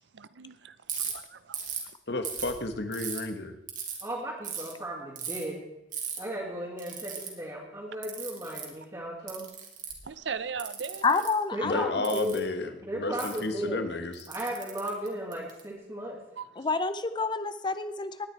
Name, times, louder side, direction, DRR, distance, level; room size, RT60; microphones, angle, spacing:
voice 1, 0.1-1.6 10.0-11.2 16.4-16.5, right 6 dB, 80° right, 14 dB, 0.6 m, -38 dB
Ratchet pawl, 0.9-1.1 1.5-1.9 2.3-3.2 3.7-4.0 4.4-4.7 5.2-5.4 5.9-6.2 6.8-7.3 8.0-8.7 9.3-10.1 10.6-11.3 12.0-12.4 13.2-13.4 14.1-15.6, right 7 dB, 45° right, 2.9 m, -36 dB
voice 2, 2.1-3.5 11.6-14.1, left 2 dB, 65° left, 7 dB, 1.3 m, -32 dB
voice 3, 4.0-5.6 6.2-9.5 11.5-12.4 12.8-13.8 14.3-16.2, equal, 20° right, -7 dB, 2.7 m, -35 dB
voice 4, 11.0-11.9 16.6-18.3, left 4 dB, 25° left, 11 dB, 0.6 m, -28 dB
19.0 x 10.0 x 4.6 m, 0.91 s
head